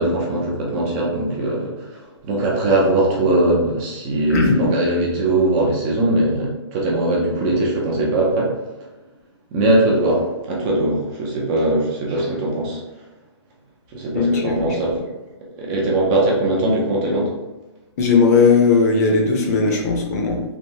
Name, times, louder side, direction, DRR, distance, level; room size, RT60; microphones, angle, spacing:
voice 1, 0.0-8.6 9.5-12.8 13.9-15.0 15.6-17.3, right 1 dB, 20° right, -3 dB, 0.5 m, -20 dB
voice 2, 4.3-4.6 14.1-15.0 18.0-20.4, left 4 dB, 35° left, 0 dB, 0.7 m, -17 dB
3.3 x 2.6 x 2.7 m, 1.1 s
hypercardioid pair, 160°, 15 cm